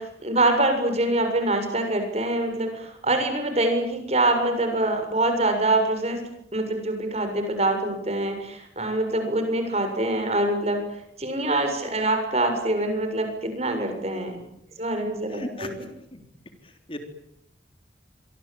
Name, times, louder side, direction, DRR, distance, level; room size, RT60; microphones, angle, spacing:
voice 1, 0.0-6.2 6.5-10.8 11.2-14.4 14.8-15.9, right 2 dB, 35° right, 6 dB, 7.0 m, -25 dB
voice 2, 15.3-15.7 16.1-16.2 16.9-17.0, left 1 dB, 30° left, 6 dB, 3.6 m, -34 dB
27.5 x 24.0 x 9.0 m, 0.76 s
head